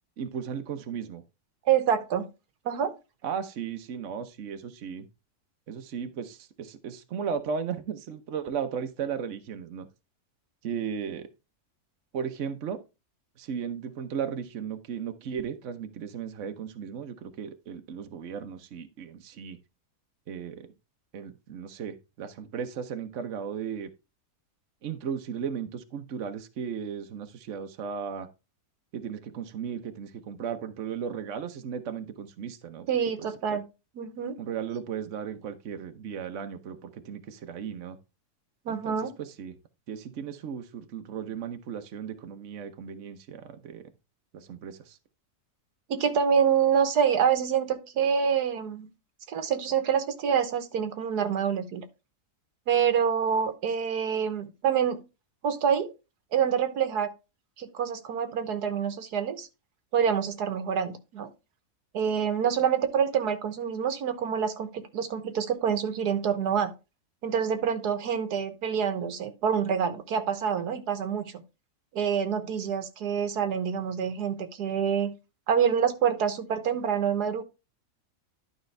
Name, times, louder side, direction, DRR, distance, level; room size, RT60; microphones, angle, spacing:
voice 1, 0.2-1.2 3.2-5.1 5.7-9.9 10.6-11.3 12.1-12.8 13.4-19.6 20.3-20.7 21.1-23.9 24.8-28.3 28.9-32.9 33.2-33.6 34.4-38.0 38.7-39.6 39.9-43.9 44.3-45.0, right 7 dB, 55° right, 1.2 m, -36 dB
voice 2, 1.6-2.2 2.6-2.9 32.9-33.6 33.9-34.4 38.6-39.1 45.9-48.9 49.3-51.8 52.7-55.0 55.4-55.9 56.3-57.1 57.6-59.5 59.9-61.3 61.9-66.7 67.2-71.3 71.9-75.1 75.5-77.4, right 7 dB, 85° right, 1.7 m, -26 dB
11.5 x 5.3 x 3.3 m
omnidirectional pair, 1.7 m